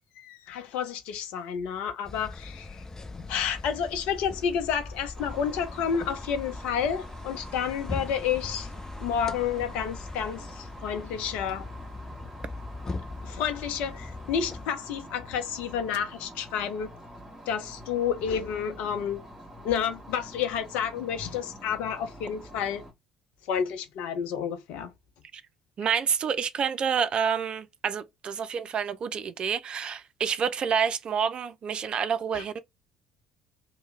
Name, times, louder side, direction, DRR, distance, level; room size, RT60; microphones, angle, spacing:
voice 1, 0.2-2.8 3.3-8.7 9.0-11.7 12.0-12.1 13.2-16.9 17.5-19.3 19.6-22.8 23.4-24.9 32.3-32.5, left 7 dB, 60° left, 0.7 m, -30 dB
sound 1, 2.0-14.7, left 3 dB, 25° left, 0.5 m, -40 dB
sound 2, 5.1-22.9, equal, 20° right, 1.5 m, -46 dB
voice 2, 25.8-32.6, right 7 dB, 40° right, 0.4 m, -28 dB
3.0 x 2.2 x 3.2 m
figure-of-eight pair, 55°, 2 cm